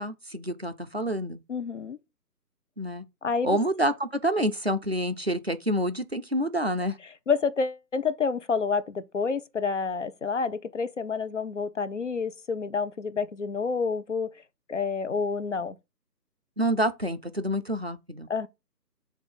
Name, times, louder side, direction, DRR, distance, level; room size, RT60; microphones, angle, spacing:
voice 1, 0.0-1.4 2.8-3.0 3.4-7.0 16.6-18.3, equal, 40° right, 0.4 m, -28 dB
voice 2, 1.5-2.0 3.2-3.6 7.3-14.3 14.7-15.8 18.3-18.5, left 5 dB, 45° left, 0.6 m, -28 dB
7.2 x 2.6 x 5.3 m
figure-of-eight pair, 155°, 50 cm